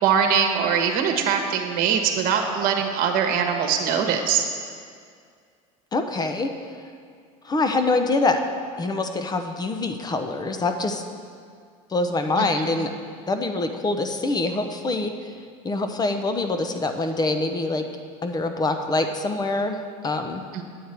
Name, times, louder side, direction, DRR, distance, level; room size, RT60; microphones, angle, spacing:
voice 1, 0.0-4.4 12.4-12.5 12.8-12.9 20.5-20.6, right 7 dB, 55° right, 4 dB, 1.3 m, -22 dB
voice 2, 5.9-6.5 7.4-8.4 8.8-11.0 11.9-12.9 13.3-15.3 15.6-17.9 18.2-19.8 20.0-20.4, left 2 dB, 25° left, 6 dB, 0.8 m, -25 dB
9.2 x 8.4 x 4.5 m, 2.1 s
supercardioid pair, 90°, 17 cm